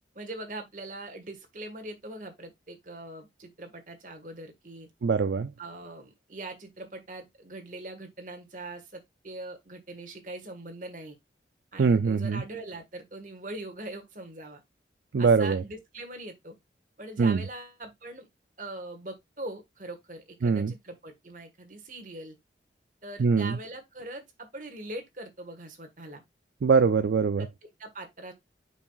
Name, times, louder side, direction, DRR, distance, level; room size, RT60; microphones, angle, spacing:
voice 1, 0.1-4.9 5.6-11.2 11.7-14.6 15.2-16.5 17.0-18.3 18.6-22.3 23.0-26.2 27.4-28.3, right 2 dB, 45° right, 1.5 m, -42 dB
voice 2, 5.0-5.5 11.8-12.4 15.1-15.6 17.2-17.4 20.4-20.7 23.2-23.6 26.6-27.5, right 5 dB, 70° right, 0.4 m, -23 dB
7.2 x 5.6 x 2.3 m
head